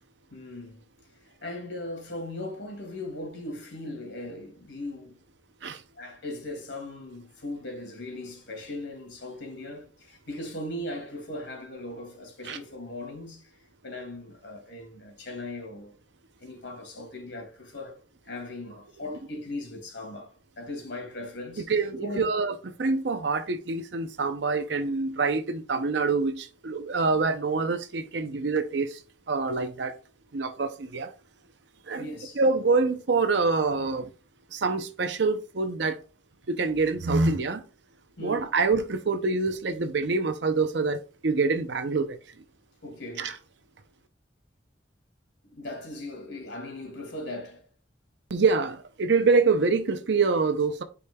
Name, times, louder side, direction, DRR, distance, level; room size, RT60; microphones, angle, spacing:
voice 1, 0.3-0.8 1.2-5.1 6.0-15.9 16.4-22.3 32.0-32.4 38.2-38.5 42.8-43.4 45.5-47.7, left 1 dB, 75° left, 2.4 m, -39 dB
voice 2, 21.7-22.5 22.8-29.0 29.3-29.9 30.3-31.1 31.9-32.1 32.4-34.1 34.5-36.0 36.5-37.6 38.2-42.2 43.2-43.4 48.3-50.8, right 4 dB, 70° right, 0.6 m, -25 dB
9.6 x 5.0 x 2.3 m
head